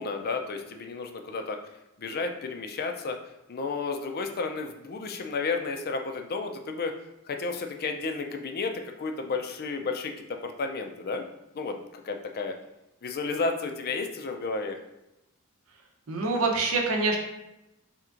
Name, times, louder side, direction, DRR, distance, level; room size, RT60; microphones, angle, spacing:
voice 1, 0.0-1.6 2.0-3.2 3.5-6.9 7.3-11.2 11.5-12.5 13.0-14.8, left 4 dB, 45° left, 5 dB, 0.4 m, -32 dB
voice 2, 16.1-17.2, right 3 dB, 75° right, 2 dB, 0.7 m, -25 dB
4.3 x 3.5 x 2.5 m, 0.92 s
head